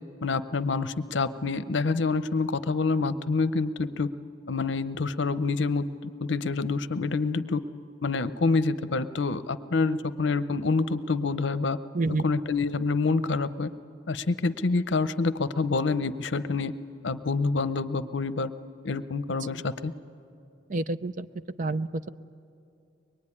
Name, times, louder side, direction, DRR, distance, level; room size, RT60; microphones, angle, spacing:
voice 1, 0.2-4.1 4.5-7.6 8.0-11.8 12.2-13.7 14.1-16.7 17.0-18.5 18.8-19.9, left 3 dB, 70° left, 13 dB, 0.7 m, -27 dB
voice 2, 20.7-21.3 21.6-22.1, right 3 dB, 45° right, 13 dB, 0.6 m, -28 dB
23.5 x 21.5 x 9.8 m, 2.5 s
head